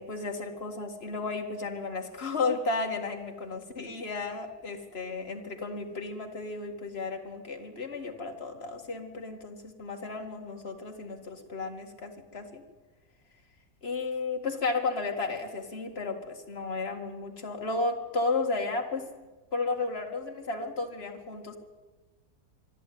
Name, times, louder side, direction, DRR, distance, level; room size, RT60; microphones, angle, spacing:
voice 1, 0.0-12.6 13.8-19.1 19.5-21.6, left 3 dB, 40° left, 3 dB, 2.1 m, -33 dB
24.5 x 12.0 x 9.3 m, 1.3 s
omnidirectional pair, 1.6 m